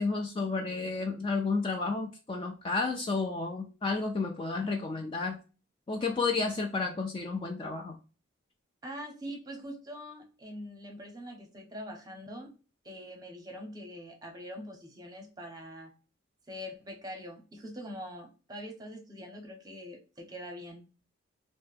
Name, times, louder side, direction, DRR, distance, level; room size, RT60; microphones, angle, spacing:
voice 1, 0.0-5.4 5.9-7.9, left 4 dB, 25° left, 3 dB, 0.3 m, -31 dB
voice 2, 8.8-12.5 12.8-15.9 16.5-20.8, equal, 20° right, 1 dB, 0.8 m, -43 dB
2.8 x 2.1 x 3.2 m, 0.34 s
head